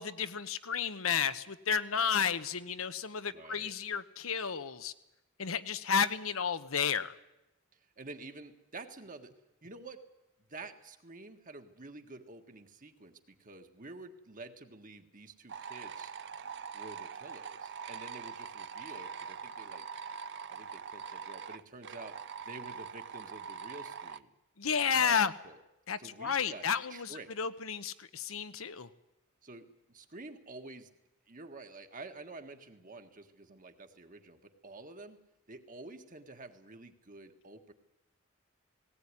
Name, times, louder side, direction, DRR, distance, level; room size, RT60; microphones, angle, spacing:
voice 1, 0.0-4.9 5.4-7.1 24.6-25.3 25.9-28.9, left 7 dB, 70° left, 12 dB, 1.0 m, -32 dB
voice 2, 3.3-3.7 7.7-9.3 9.6-10.0 10.5-16.1 16.7-19.9 20.5-22.2 22.4-24.3 25.0-25.6 26.0-27.3 29.4-30.9 31.3-35.2 35.5-37.7, right 3 dB, 40° right, 6 dB, 1.7 m, -49 dB
sound 1, 15.5-24.2, right 6 dB, 55° right, 0.7 m, -43 dB
18.5 x 18.0 x 9.9 m, 0.92 s
head